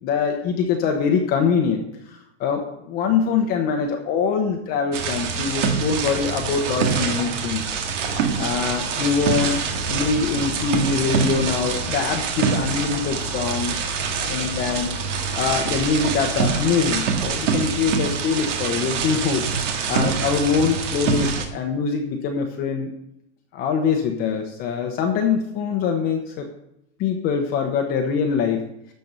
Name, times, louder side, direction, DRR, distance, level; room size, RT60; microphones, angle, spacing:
voice 1, 0.0-1.8 2.1-7.6 8.4-9.6 9.9-14.9 15.4-19.4 19.9-22.9 23.5-26.5 27.0-28.6, left 6 dB, 25° left, 3 dB, 0.9 m, -23 dB
sound 1, 4.9-21.4, right 5 dB, 80° right, 1.9 m, -25 dB
12.0 x 4.6 x 6.7 m, 0.81 s
supercardioid pair, 165°, 36 cm